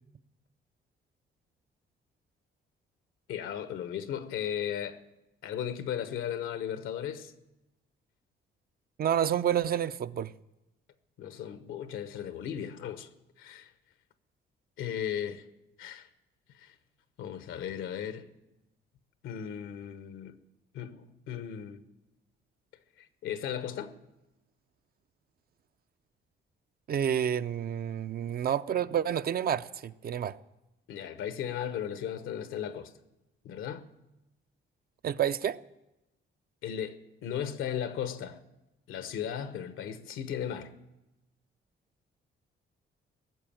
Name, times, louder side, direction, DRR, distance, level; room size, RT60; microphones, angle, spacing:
voice 1, 3.3-5.0 5.4-7.3 11.2-13.1 13.4-13.7 14.8-15.4 15.8-16.1 16.5-16.7 17.2-18.3 19.2-20.4 20.7-21.8 23.0-23.9 30.9-32.9 33.4-33.9 36.6-38.4 38.9-40.7, left 9 dB, 85° left, 1.1 m, -36 dB
voice 2, 9.0-10.3 26.9-30.4 35.0-35.6, right 9 dB, 50° right, 0.5 m, -29 dB
18.5 x 7.0 x 8.9 m
cardioid pair, 90°, 20 cm